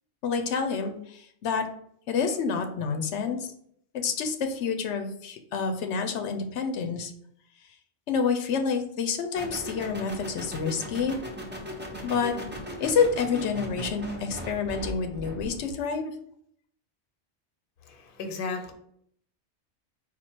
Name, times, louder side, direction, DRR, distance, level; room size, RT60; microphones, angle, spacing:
voice 1, 0.2-1.7 2.1-3.5 4.0-7.1 8.1-11.2 12.0-12.3 12.8-16.1, left 5 dB, 90° left, 5 dB, 0.9 m, -28 dB
sound 1, 9.4-15.7, equal, 10° right, 0.7 m, -38 dB
voice 2, 17.8-18.7, left 4 dB, 55° left, 5 dB, 0.8 m, -35 dB
4.3 x 2.4 x 4.3 m, 0.68 s
omnidirectional pair, 1.2 m